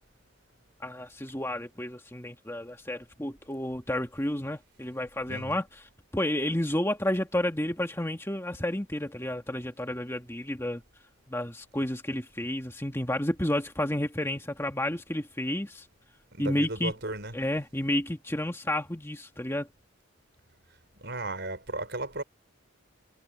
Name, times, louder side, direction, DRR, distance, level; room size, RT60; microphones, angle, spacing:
voice 1, 0.8-5.6 6.1-10.8 11.3-15.9 16.4-16.9 17.3-19.7, left 1 dB, 10° left, 1.9 m, -31 dB
voice 2, 16.3-17.3 21.0-22.2, right 2 dB, 55° right, 5.5 m, -35 dB
head